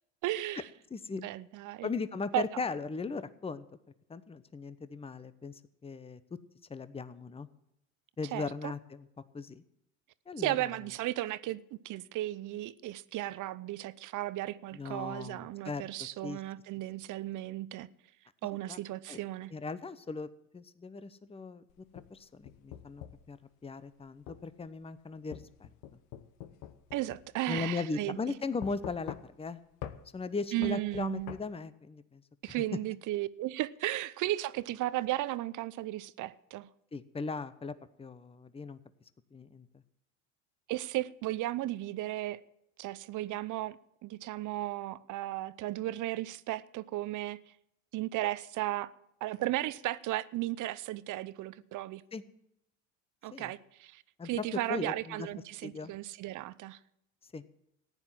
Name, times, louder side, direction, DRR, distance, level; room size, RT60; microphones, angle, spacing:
voice 1, 0.2-0.7 1.2-1.9 2.3-2.5 8.3-8.7 10.4-11.6 11.8-17.9 18.4-19.5 26.9-28.2 30.5-31.3 32.4-36.7 40.7-42.4 42.8-43.8 44.0-47.4 47.9-48.9 49.2-52.0 53.2-56.8, right 15 dB, 50° right, 0.8 m, -35 dB
voice 2, 0.9-1.2 1.8-3.6 4.1-6.2 6.7-7.5 8.2-9.1 9.3-9.6 10.3-10.7 14.7-16.4 18.7-18.8 19.1-21.6 22.1-25.7 27.5-29.6 30.1-32.2 32.5-32.6 36.9-38.8 39.3-39.7 52.1-52.2 53.3-53.5 54.2-54.4 54.7-55.3 55.6-55.9 57.3-57.5, left 4 dB, 15° left, 0.9 m, -38 dB
sound 1, 21.7-23.3 24.3-24.4 25.3-27.3 27.6-27.7 28.6-29.5 29.8-30.0 30.6-31.4, left 11 dB, 70° left, 1.3 m, -44 dB
14.5 x 9.8 x 7.6 m
hypercardioid pair, 80°, 38 cm